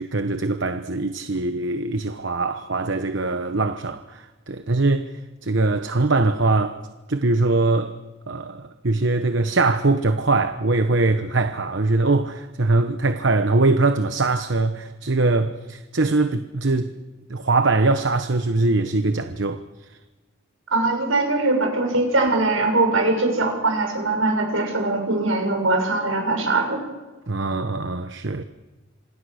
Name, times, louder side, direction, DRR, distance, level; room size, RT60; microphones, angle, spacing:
voice 1, 0.0-5.1 5.4-6.8 7.1-7.9 8.3-16.9 17.3-19.6 27.3-28.4, right 3 dB, 65° right, 1.0 m, -22 dB
voice 2, 20.7-26.8, right 2 dB, 85° right, 6.8 m, -21 dB
27.0 x 25.5 x 6.5 m
head